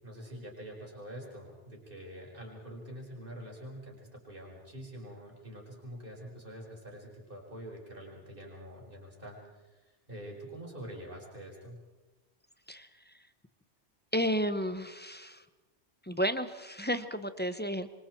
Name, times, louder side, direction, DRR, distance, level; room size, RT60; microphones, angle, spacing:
voice 1, 0.0-11.8, right 1 dB, 50° right, -2 dB, 5.2 m, -46 dB
voice 2, 12.7-13.2 14.1-15.4 16.0-17.9, equal, 10° left, 11 dB, 0.9 m, -32 dB
26.5 x 25.0 x 4.6 m, 1.2 s
omnidirectional pair, 1.2 m